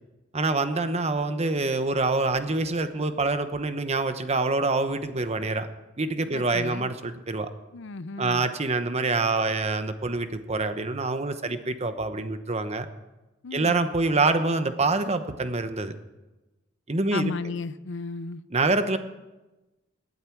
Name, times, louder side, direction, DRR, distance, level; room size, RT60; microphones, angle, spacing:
voice 1, 0.3-5.7 6.0-7.5 8.2-12.9 13.5-15.9 16.9-17.3 18.5-19.0, right 3 dB, 35° right, 9 dB, 1.0 m, -26 dB
voice 2, 6.3-6.9 7.7-8.5 11.4-11.5 13.4-13.8 17.1-18.4, left 3 dB, 65° left, 15 dB, 0.6 m, -34 dB
18.5 x 12.0 x 4.7 m, 1.1 s
head